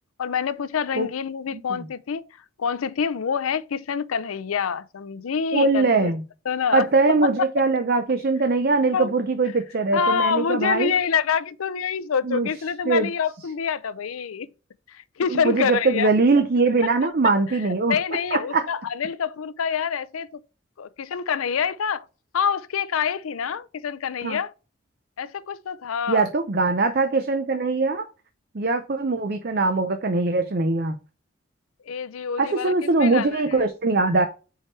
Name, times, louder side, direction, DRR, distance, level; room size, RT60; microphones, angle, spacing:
voice 1, 0.2-2.2 2.6-6.1 6.5-6.9 8.9-9.1 9.9-14.5 14.9-16.1 17.9-20.4 20.8-22.0 22.3-24.5 25.2-26.3 31.9-33.6, left 6 dB, 90° left, 0.5 m, -26 dB
voice 2, 5.5-6.2 6.7-10.9 12.2-12.5 12.8-13.1 15.3-18.0 18.3-18.6 24.2-24.4 26.1-28.1 28.5-31.0 32.4-34.3, right 3 dB, 45° right, 0.6 m, -22 dB
4.7 x 4.5 x 4.4 m
head